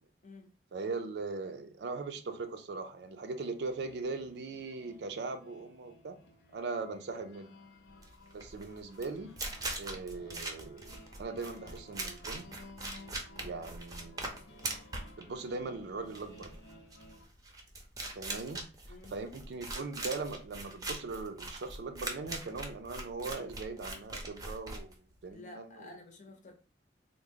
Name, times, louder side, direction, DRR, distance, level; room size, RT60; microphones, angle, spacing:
voice 1, 0.7-6.2 6.5-7.6 8.3-9.3 9.8-10.9 11.2-12.4 13.4-14.7 15.2-16.6 18.2-18.7 19.1-24.9 25.2-25.8, right 3 dB, 70° right, 0.4 m, -40 dB
sound 1, 3.6-17.3, left 1 dB, 85° left, 0.6 m, -56 dB
sound 2, 7.9-25.3, right 2 dB, 20° right, 0.5 m, -41 dB
voice 2, 25.3-26.5, left 2 dB, 45° left, 0.7 m, -51 dB
3.5 x 2.0 x 3.4 m
head